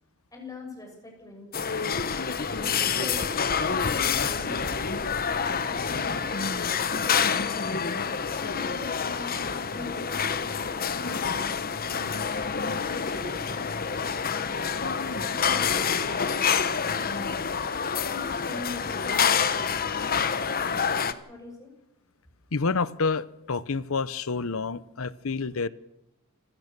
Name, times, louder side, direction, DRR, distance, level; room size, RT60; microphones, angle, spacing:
voice 1, 0.3-2.3 3.0-5.0 5.6-7.6 8.3-12.2 12.7-14.4 15.0-17.4 18.0-19.7 21.3-21.7, left 2 dB, 15° left, 1 dB, 6.5 m, -43 dB
sound 1, 1.5-21.1, left 6 dB, 40° left, 1.1 m, -27 dB
voice 2, 22.5-25.7, left 4 dB, 65° left, 17 dB, 0.8 m, -28 dB
27.5 x 16.0 x 6.8 m, 0.89 s
head